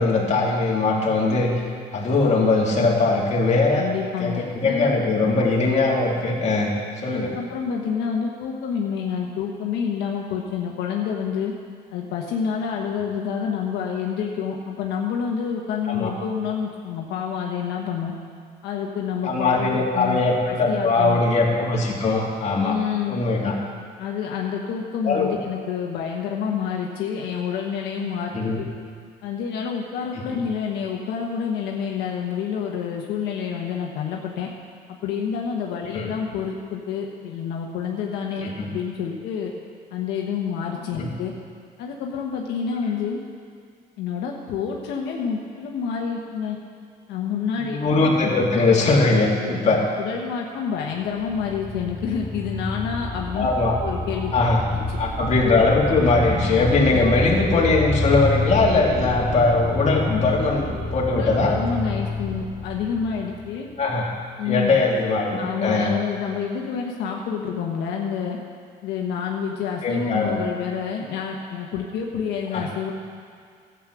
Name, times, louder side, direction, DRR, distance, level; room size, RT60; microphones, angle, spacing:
voice 1, 0.0-1.5 1.9-3.9 4.2-6.7 7.0-7.3 15.9-16.1 19.2-22.8 23.1-23.5 25.0-25.4 28.3-28.6 30.3-30.4 35.9-36.1 38.4-38.7 41.0-41.1 47.7-49.8 53.3-53.8 54.3-54.6 55.0-61.5 63.8-64.1 64.5-65.9 69.8-70.4 72.5-72.7, left 3 dB, 40° left, -2 dB, 2.4 m, -21 dB
voice 2, 3.7-4.9 7.1-11.5 11.9-18.1 18.6-21.2 22.5-23.2 24.0-28.3 28.6-28.7 29.2-34.5 34.9-39.5 39.9-41.3 41.8-43.2 44.0-46.6 47.1-47.8 49.4-49.5 50.0-53.5 53.8-54.3 54.7-55.0 56.9-57.0 61.1-63.7 64.4-64.8 65.4-68.4 68.8-72.9, left 7 dB, 85° left, 0 dB, 1.2 m, -28 dB
sound 1, 51.1-63.7, left 2 dB, 15° right, 1.9 m, -28 dB
12.5 x 8.4 x 6.2 m, 2.2 s
cardioid pair, 110°, 17 cm